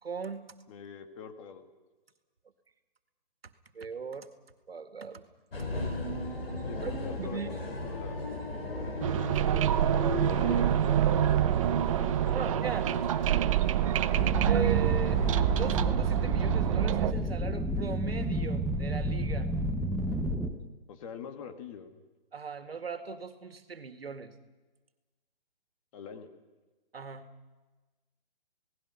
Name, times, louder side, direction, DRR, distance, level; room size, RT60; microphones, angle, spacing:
voice 1, 0.0-0.5 3.7-4.3 4.7-5.2 6.8-6.9 7.2-7.6 8.7-9.0 12.3-12.9 14.5-15.2 15.5-19.5 22.3-24.3 26.9-27.3, right 6 dB, 85° right, 9 dB, 2.1 m, -38 dB
voice 2, 0.7-1.6 6.6-8.5 9.8-11.5 12.0-12.8 20.9-22.0 25.9-26.3, left 7 dB, 35° left, 7 dB, 2.0 m, -45 dB
sound 1, 5.5-15.9, left 2 dB, 80° left, 5.7 m, -37 dB
sound 2, 9.0-17.1, right 11 dB, 35° right, 0.8 m, -26 dB
sound 3, 14.2-20.5, equal, ahead, 0.9 m, -31 dB
29.0 x 18.5 x 5.7 m, 1.2 s
hypercardioid pair, 145°, 29 cm